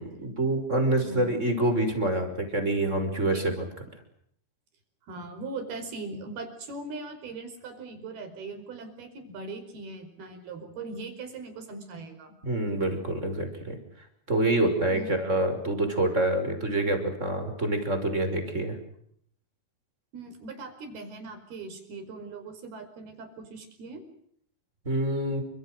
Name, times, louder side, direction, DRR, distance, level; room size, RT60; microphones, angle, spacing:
voice 1, 0.0-3.6 12.4-13.8 14.3-18.8 24.8-25.4, right 1 dB, 15° right, 6 dB, 5.8 m, -26 dB
voice 2, 1.0-1.4 3.3-3.5 5.1-12.4 14.9-15.3 20.1-24.0, right 3 dB, 70° right, 8 dB, 7.0 m, -40 dB
29.5 x 26.5 x 6.6 m, 0.69 s
omnidirectional pair, 4.6 m